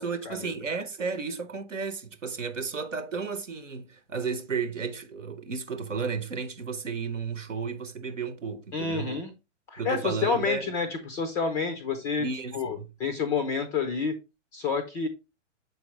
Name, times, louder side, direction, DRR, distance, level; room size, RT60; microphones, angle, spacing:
voice 1, 0.0-9.1 9.8-10.7 12.2-12.9, right 5 dB, 90° right, 1.2 m, -33 dB
voice 2, 8.7-9.3 9.7-12.3 12.5-14.2 14.5-15.1, left 5 dB, 10° left, 0.3 m, -29 dB
7.0 x 4.7 x 3.0 m
hypercardioid pair, 130°, 36 cm